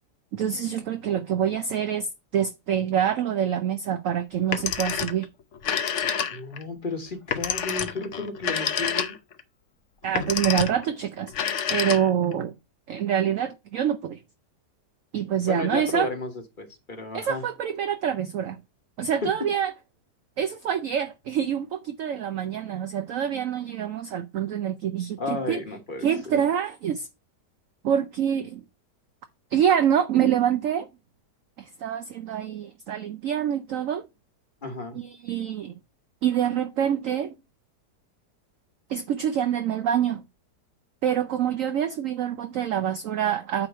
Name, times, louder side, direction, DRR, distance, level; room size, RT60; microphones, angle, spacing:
voice 1, 0.3-5.3 10.0-11.3 11.7-12.5 12.9-14.2 15.1-16.1 17.1-18.6 19.0-19.7 20.4-25.6 26.0-27.1 27.8-28.6 29.5-30.9 31.6-34.0 34.9-35.7 36.2-37.3 38.9-40.2 41.0-43.7, right 9 dB, 65° right, 0.8 m, -26 dB
Telephone, 4.4-5.2 5.5-6.6 7.3-9.4 10.0-10.8 11.3-12.3, left 7 dB, 55° left, 0.9 m, -28 dB
voice 2, 6.3-9.1 15.5-16.3 16.6-17.4 19.2-19.3 25.2-26.4 34.6-35.0, left 3 dB, 30° left, 1.4 m, -33 dB
8.7 x 3.1 x 5.8 m
omnidirectional pair, 1.9 m